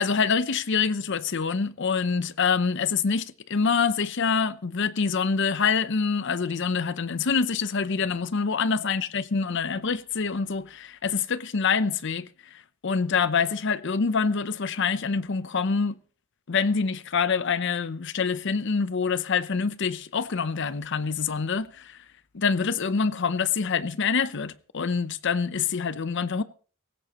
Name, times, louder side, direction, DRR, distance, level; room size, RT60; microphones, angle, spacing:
voice 1, 0.0-16.0 16.5-22.0 22.3-26.4, left 5 dB, 55° left, 0.7 m, -26 dB
18.5 x 16.0 x 3.0 m
head